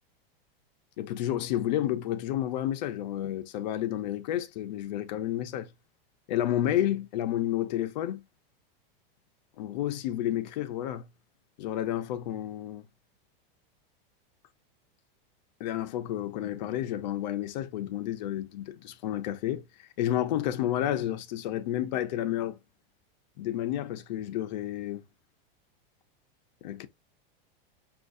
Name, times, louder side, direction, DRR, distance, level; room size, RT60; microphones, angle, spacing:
voice 1, 1.0-5.7 6.3-8.2 9.6-11.1 11.6-12.8 15.6-22.6 23.4-25.0 26.6-26.9, left 12 dB, 50° left, 0.7 m, -31 dB
6.7 x 2.5 x 2.5 m
supercardioid pair, 175°, 29 cm